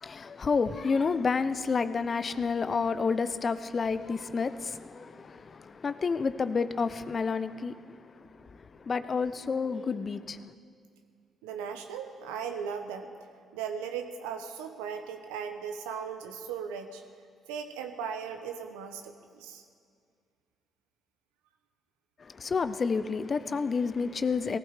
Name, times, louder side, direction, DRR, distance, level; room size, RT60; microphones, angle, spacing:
voice 1, 0.0-8.0 8.8-10.4 22.2-24.6, left 5 dB, 45° left, 0.7 m, -30 dB
voice 2, 11.4-13.1 13.5-17.0 17.5-19.6, right 7 dB, 85° right, 1.0 m, -37 dB
18.5 x 15.0 x 4.9 m
hypercardioid pair, 50°, 0 cm